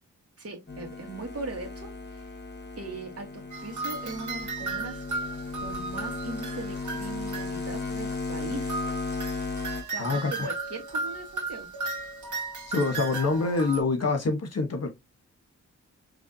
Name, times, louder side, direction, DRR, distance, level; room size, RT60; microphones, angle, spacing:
voice 1, 0.4-2.3 2.8-5.0 5.6-8.8 9.9-11.7, right 3 dB, 50° right, 1.8 m, -39 dB
sound 1, 0.7-9.8, left 3 dB, 35° left, 1.8 m, -36 dB
sound 2, 3.5-8.2 8.7-13.8, right 3 dB, 70° right, 1.7 m, -35 dB
voice 2, 10.0-10.3 12.7-14.9, left 3 dB, 50° left, 1.5 m, -26 dB
4.8 x 3.2 x 2.8 m
cardioid pair, 70°, 32 cm